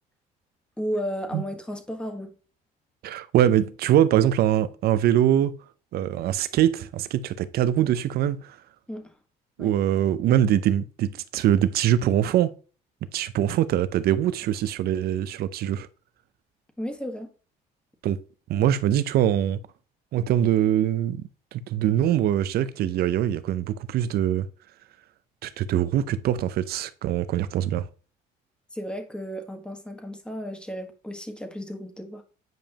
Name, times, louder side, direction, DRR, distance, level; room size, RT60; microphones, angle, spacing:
voice 1, 0.8-2.4 8.9-9.1 9.6-9.7 16.8-17.3 28.7-32.2, equal, 5° left, 1.5 m, -33 dB
voice 2, 3.0-5.5 5.9-8.6 9.6-12.5 13.1-15.9 18.0-18.2 18.5-19.6 20.1-21.2 21.5-24.5 25.4-27.9, right 11 dB, 65° right, 0.6 m, -23 dB
9.1 x 5.1 x 2.9 m
cardioid pair, 110°, 17 cm